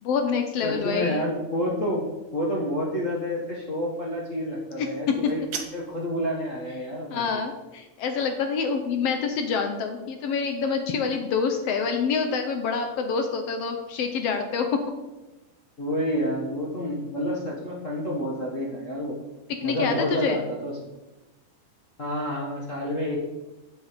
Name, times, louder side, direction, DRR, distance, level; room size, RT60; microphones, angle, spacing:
voice 1, 0.0-1.2 5.1-5.2 7.1-14.8 19.6-20.4, left 5 dB, 75° left, 6 dB, 1.4 m, -26 dB
voice 2, 0.6-2.1 2.3-5.4 5.7-7.4 15.8-19.2 19.6-20.8 22.0-23.2, equal, 50° left, -5 dB, 0.9 m, -29 dB
sound 1, 5.1-6.1, right 7 dB, 85° right, 1.1 m, -38 dB
9.3 x 6.4 x 5.1 m, 1.1 s
omnidirectional pair, 3.5 m